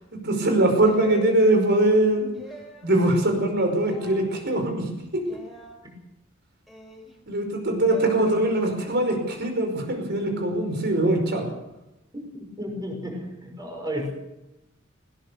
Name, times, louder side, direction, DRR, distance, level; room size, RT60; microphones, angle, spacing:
voice 1, 0.1-2.3 2.8-5.3 7.3-11.5, right 1 dB, 55° right, 5 dB, 5.2 m, -22 dB
sound 1, 0.8-1.4 2.3-2.9 3.8-4.3 5.2-5.8 6.7-7.1 7.9-8.2, left 1 dB, ahead, 4.1 m, -43 dB
voice 2, 12.6-14.1, equal, 20° right, 1 dB, 5.9 m, -32 dB
20.0 x 18.5 x 7.0 m, 0.91 s
head